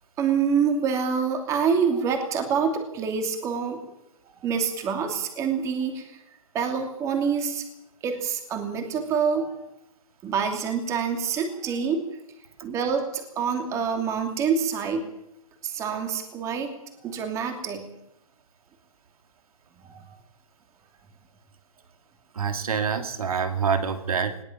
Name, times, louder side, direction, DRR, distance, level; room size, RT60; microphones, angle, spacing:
voice 1, 0.2-3.8 4.4-6.2 6.5-7.6 8.0-9.6 10.2-12.0 12.6-15.0 15.6-16.7 17.0-17.9 19.8-20.0, right 6 dB, 15° right, 5 dB, 2.8 m, -26 dB
voice 2, 22.3-24.4, right 6 dB, 85° right, 7 dB, 2.7 m, -26 dB
21.0 x 17.5 x 7.4 m, 0.80 s
hypercardioid pair, 160°, 18 cm